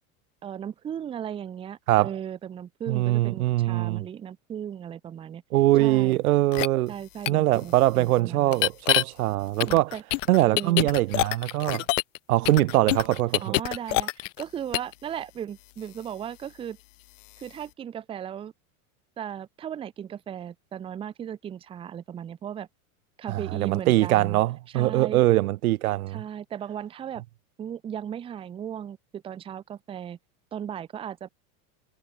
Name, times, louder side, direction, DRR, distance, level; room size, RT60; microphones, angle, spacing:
voice 1, 0.4-5.4 5.8-6.2 6.9-8.6 9.7-10.0 10.5-10.9 13.4-16.8 17.4-18.5 19.2-22.7 23.2-24.4 24.7-25.2 26.1-27.2 27.6-30.2 30.5-31.3, right 9 dB, 15° right, 0.8 m, -36 dB
voice 2, 2.9-4.0 5.5-6.9 7.3-9.9 10.3-11.8 12.3-13.5 23.3-26.2, right 16 dB, 85° right, 1.2 m, -22 dB
sound 1, 6.5-6.7 7.2-7.3 8.5-9.0 9.6-12.2 12.4-14.4 14.7-14.9, left 21 dB, 60° left, 1.0 m, -25 dB
supercardioid pair, 160°, 42 cm